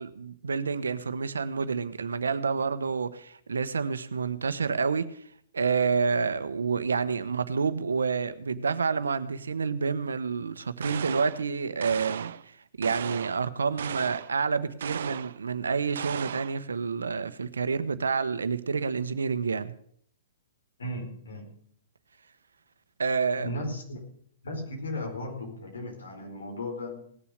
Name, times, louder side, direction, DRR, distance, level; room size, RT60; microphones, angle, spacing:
voice 1, 0.0-5.1 5.5-12.3 12.8-19.7 23.0-23.5, right 5 dB, 90° right, 1.0 m, -28 dB
sound 1, 10.8-11.4 11.8-12.4 12.8-13.4 13.8-14.3 14.8-15.4 16.0-16.6, right 9 dB, 70° right, 0.5 m, -36 dB
voice 2, 20.8-21.5 23.4-24.0 24.4-27.0, left 1 dB, 80° left, 4.7 m, -36 dB
18.5 x 7.1 x 6.5 m
hypercardioid pair, 130°, 0 cm